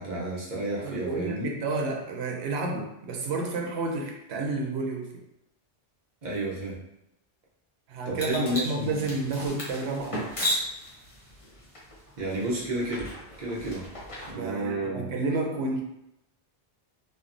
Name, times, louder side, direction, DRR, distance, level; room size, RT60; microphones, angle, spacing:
voice 1, 0.0-1.5 6.2-6.8 8.1-9.0 12.2-13.1 13.4-13.8 14.3-15.1, right 1 dB, 50° right, -4 dB, 0.8 m, -31 dB
voice 2, 0.8-5.1 7.9-10.3 14.3-15.8, right 3 dB, 90° right, 0 dB, 0.8 m, -30 dB
sound 1, 8.2-14.3, equal, 35° left, 0.7 m, -35 dB
3.1 x 2.1 x 2.5 m, 0.81 s
omnidirectional pair, 1.1 m